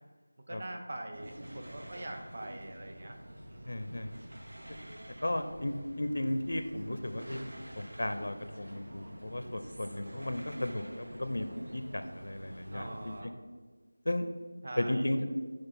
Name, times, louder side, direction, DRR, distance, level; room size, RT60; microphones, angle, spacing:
voice 1, 0.5-3.2 3.5-4.2 7.2-7.5 12.7-13.3 14.6-15.0, right 1 dB, 35° right, 3 dB, 0.7 m, -43 dB
sound 1, 1.1-13.2, right 1 dB, 80° right, 0.9 m, -47 dB
voice 2, 3.7-4.1 5.2-7.4 7.8-13.1 14.1-14.3 14.8-15.3, left 1 dB, 65° left, 8 dB, 0.5 m, -34 dB
6.1 x 3.1 x 5.7 m, 1.4 s
figure-of-eight pair, 180°, 0 cm